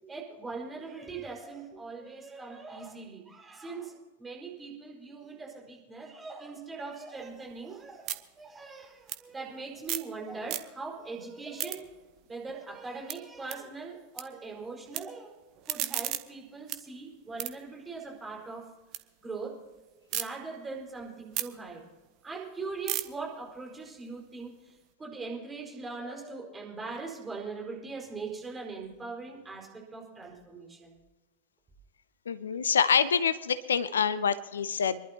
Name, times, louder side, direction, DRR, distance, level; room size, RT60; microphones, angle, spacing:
voice 1, 0.0-8.1 8.4-11.9 12.2-15.3 15.7-18.7 19.2-19.6 20.1-21.8 22.2-24.6 25.0-31.0, right 4 dB, 15° right, -1 dB, 5.0 m, -41 dB
sound 1, 7.2-10.2 10.4-11.0 11.3-14.2 14.5-15.0 15.4-19.0 19.4-20.2 20.7-24.9, right 13 dB, 40° right, 0.9 m, -38 dB
voice 2, 32.3-35.0, left 7 dB, 70° left, 16 dB, 0.6 m, -26 dB
26.5 x 11.5 x 2.9 m, 1.2 s
figure-of-eight pair, 90°, 0 cm